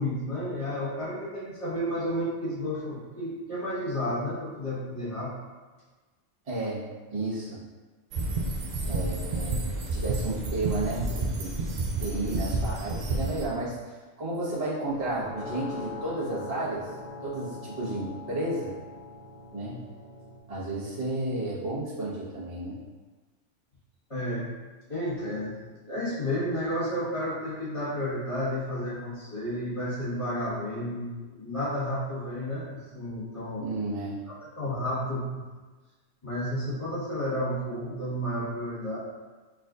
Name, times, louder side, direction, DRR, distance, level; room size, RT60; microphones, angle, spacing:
voice 1, 0.0-5.3 24.1-24.5 24.9-33.8 34.6-35.5 36.2-39.0, equal, 25° left, -10 dB, 1.4 m, -31 dB
voice 2, 6.4-6.8 7.1-7.6 8.8-11.7 12.0-16.9 17.2-18.7 19.5-19.8 20.5-22.8 33.6-34.2, right 2 dB, 30° right, -10 dB, 1.2 m, -32 dB
sound 1, 8.1-13.5, right 2 dB, 80° right, 0.4 m, -30 dB
sound 2, 14.9-20.4, left 3 dB, 85° left, 1.3 m, -42 dB
4.1 x 3.6 x 2.5 m, 1.3 s
omnidirectional pair, 1.3 m